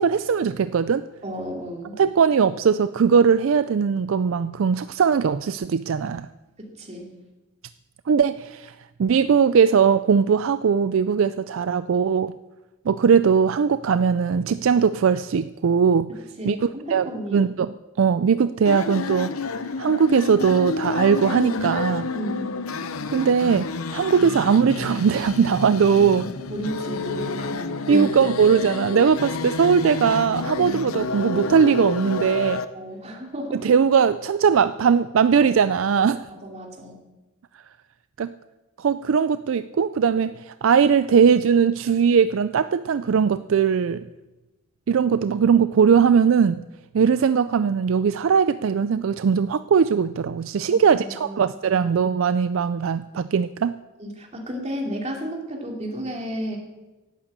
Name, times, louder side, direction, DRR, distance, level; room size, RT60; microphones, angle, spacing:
voice 1, 0.0-1.0 2.0-6.3 8.1-12.3 12.9-16.1 16.4-17.1 17.3-22.1 23.1-26.3 27.9-32.6 33.5-36.2 38.2-38.3 38.8-44.0 44.9-46.6 46.9-53.7, right 6 dB, 65° right, 13 dB, 0.4 m, -20 dB
voice 2, 1.2-2.0 6.6-7.1 16.4-17.5 22.1-22.6 26.5-28.2 32.7-33.5 36.0-36.9 50.9-51.8 54.0-56.6, equal, 30° right, 1 dB, 2.8 m, -33 dB
sound 1, 18.6-32.6, left 3 dB, 85° left, 0.8 m, -29 dB
11.5 x 8.9 x 8.5 m, 1.1 s
head